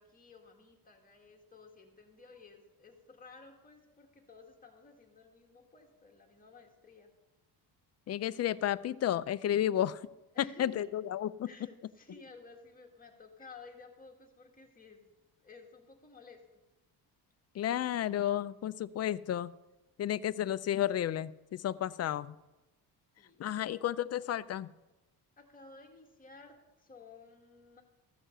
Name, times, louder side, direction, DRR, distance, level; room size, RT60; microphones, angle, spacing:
voice 1, 0.0-7.1 10.3-10.9 11.5-15.0 15.4-16.4 23.2-23.9 25.4-27.8, left 4 dB, 20° left, 2 dB, 1.9 m, -55 dB
voice 2, 8.1-10.0 10.4-11.5 17.5-19.5 20.0-22.4 23.4-24.7, left 11 dB, 40° left, 16 dB, 0.4 m, -32 dB
14.5 x 6.3 x 6.7 m, 1.0 s
cardioid pair, 120°, 40 cm